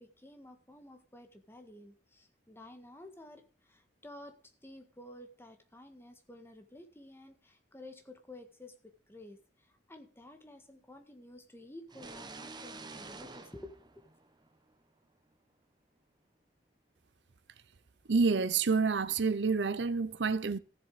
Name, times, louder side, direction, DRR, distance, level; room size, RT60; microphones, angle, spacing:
voice 1, 0.0-4.4 4.6-13.9, left 1 dB, 15° left, 1.7 m, -52 dB
sound 1, 11.9-14.7, right 3 dB, 25° right, 1.1 m, -48 dB
voice 2, 18.1-20.6, right 4 dB, 85° right, 0.7 m, -28 dB
14.5 x 7.4 x 5.0 m
head